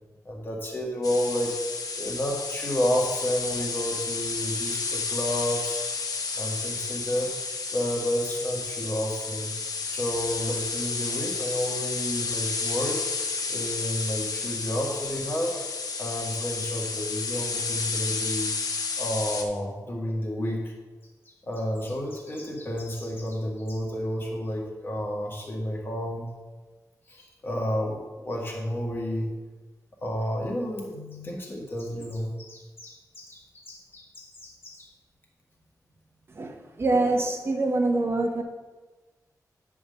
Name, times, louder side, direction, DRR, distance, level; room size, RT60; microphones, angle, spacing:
voice 1, 0.3-1.6 2.0-5.8 6.3-7.3 7.7-9.5 9.9-13.0 13.3-15.6 16.0-18.5 19.0-20.7 21.5-26.3 27.1-29.3 30.0-34.9, equal, 35° left, -1 dB, 1.6 m, -31 dB
sound 1, 1.0-19.4, left 4 dB, 70° left, 0.8 m, -31 dB
voice 2, 36.3-38.4, right 2 dB, 40° right, 4 dB, 0.9 m, -25 dB
9.9 x 3.6 x 6.6 m, 1.2 s
wide cardioid pair, 180°, 7 cm